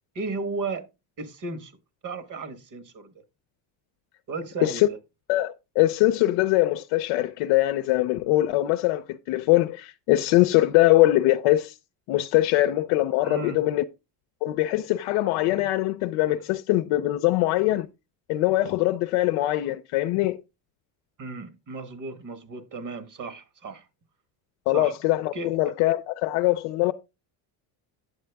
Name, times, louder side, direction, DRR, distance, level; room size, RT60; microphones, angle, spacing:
voice 1, 0.1-0.9 1.2-1.7 2.0-3.1 4.3-5.0 13.2-13.6 21.2-23.8 24.7-24.9 25.3-25.5, right 3 dB, 35° right, 1.4 m, -34 dB
voice 2, 5.3-11.7 12.1-13.8 14.4-17.9 18.3-20.4 24.7-26.9, left 16 dB, 80° left, 0.7 m, -22 dB
8.6 x 7.5 x 3.4 m
cardioid pair, 110°, 50 cm